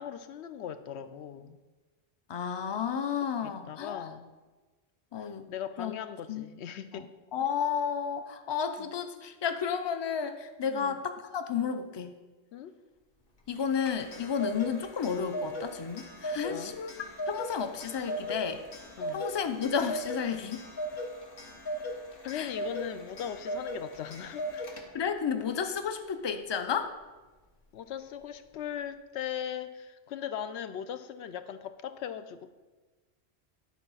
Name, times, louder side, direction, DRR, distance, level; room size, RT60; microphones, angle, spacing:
voice 1, 0.0-1.6 3.4-4.3 5.2-7.1 8.8-8.9 10.7-11.0 12.5-12.7 16.5-16.7 19.0-19.2 22.2-24.7 27.7-32.5, left 9 dB, 90° left, 11 dB, 0.9 m, -39 dB
voice 2, 2.3-4.1 5.1-5.5 5.8-5.9 6.3-6.4 6.9-12.1 13.5-18.6 19.1-20.7 22.3-22.5 24.9-26.9, left 7 dB, 35° left, 8 dB, 0.4 m, -32 dB
Clock, 13.6-25.2, equal, 60° left, 1.3 m, -38 dB
10.5 x 4.1 x 5.5 m, 1.2 s
omnidirectional pair, 1.1 m